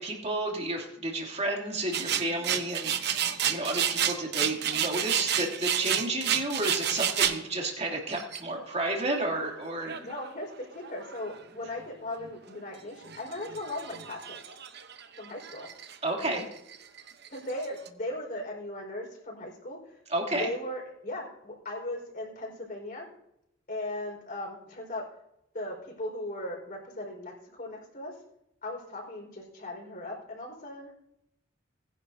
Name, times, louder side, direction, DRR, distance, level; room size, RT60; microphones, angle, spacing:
voice 1, 0.0-10.0 16.0-16.4 20.1-20.5, right 2 dB, 35° right, 0 dB, 2.8 m, -31 dB
sound 1, 1.9-7.4 8.1-8.4 9.8-10.5 10.8-11.3 11.8-11.9 12.2-12.3 12.9-16.0 16.2-17.9, right 9 dB, 55° right, 0.9 m, -30 dB
voice 2, 9.8-14.4 15.2-15.7 17.3-20.0 20.3-23.1 23.7-25.0 25.5-28.2 28.6-30.9, left 1 dB, 45° left, -1 dB, 4.8 m, -38 dB
19.5 x 10.5 x 2.7 m, 0.83 s
head